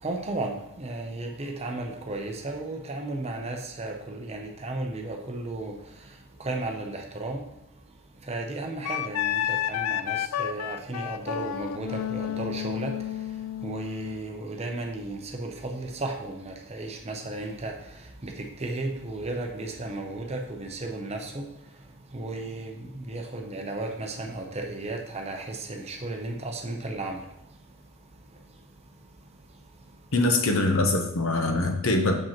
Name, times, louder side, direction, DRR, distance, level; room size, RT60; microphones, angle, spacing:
voice 1, 0.0-6.1 6.4-7.4 8.2-13.0 13.6-21.5 22.1-27.2, right 2 dB, 30° right, 0.7 m, -34 dB
Wind instrument woodwind instrument, 8.9-14.2, left 11 dB, 85° left, 0.3 m, -31 dB
voice 2, 30.1-32.2, left 2 dB, 65° left, 0.8 m, -23 dB
7.2 x 5.2 x 3.0 m
head